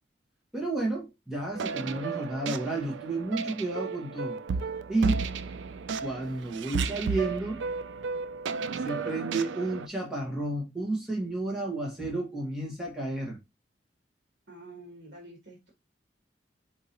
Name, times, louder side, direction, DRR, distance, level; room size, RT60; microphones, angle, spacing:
voice 1, 0.5-4.4 4.9-5.3 6.0-7.6 8.7-13.4, right 2 dB, 5° right, 1.5 m, -31 dB
sound 1, 1.5-9.9, right 5 dB, 85° right, 0.4 m, -33 dB
voice 2, 14.5-15.7, right 2 dB, 65° right, 1.5 m, -48 dB
4.7 x 3.7 x 2.8 m
head